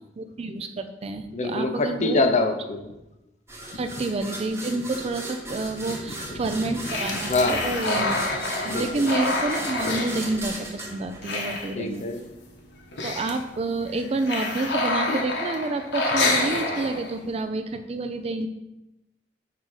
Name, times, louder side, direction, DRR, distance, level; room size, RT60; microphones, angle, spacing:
voice 1, 0.2-2.2 3.7-12.0 13.0-18.5, right 2 dB, 35° right, 8 dB, 0.4 m, -29 dB
voice 2, 1.3-3.0 3.7-3.8 6.1-6.2 6.4-6.5 7.3-8.0 8.7-9.1 11.7-12.2, left 2 dB, 40° left, 6 dB, 0.6 m, -25 dB
sound 1, 3.5-12.0, right 1 dB, 15° right, 1.0 m, -36 dB
sound 2, 6.8-10.8 11.1-12.2 12.5-12.6 12.8-13.4 13.9-17.3, left 2 dB, 70° left, 1.0 m, -28 dB
5.6 x 3.8 x 4.7 m, 0.97 s
head